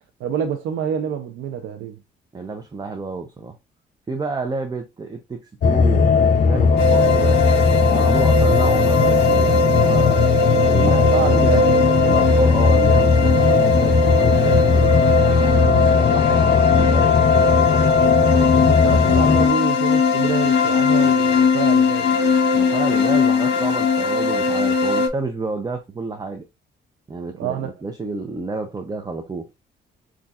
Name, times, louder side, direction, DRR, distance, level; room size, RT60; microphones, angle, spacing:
voice 1, 0.2-2.0 10.8-11.8 15.6-15.9 18.6-22.1 27.4-27.8, right 8 dB, 90° right, 0.6 m, -27 dB
voice 2, 2.3-3.6 4.1-7.5 7.8-10.2 10.7-11.5 12.0-14.9 15.7-17.2 22.5-26.4 27.1-29.5, right 3 dB, 20° right, 0.6 m, -30 dB
sound 1, 5.6-19.5, left 5 dB, 45° left, 0.6 m, -18 dB
sound 2, 6.8-25.1, left 3 dB, 60° left, 1.0 m, -19 dB
5.3 x 2.5 x 2.4 m
cardioid pair, 90°, 20 cm